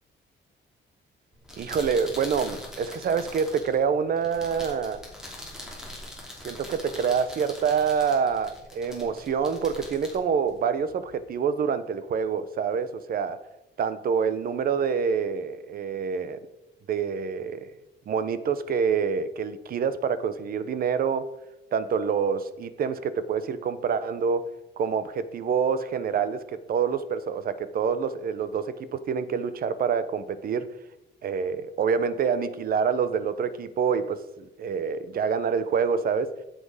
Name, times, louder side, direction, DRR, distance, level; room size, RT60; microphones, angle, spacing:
sound 1, 1.3-11.1, left 1 dB, 5° right, 2.8 m, -43 dB
voice 1, 1.6-5.0 6.4-13.4 13.8-16.4 16.9-17.7 18.1-21.3 21.7-24.5 24.8-30.7 31.2-36.3, right 6 dB, 50° right, 13 dB, 0.8 m, -26 dB
13.5 x 7.8 x 4.9 m, 0.94 s
cardioid pair, 175°, 20 cm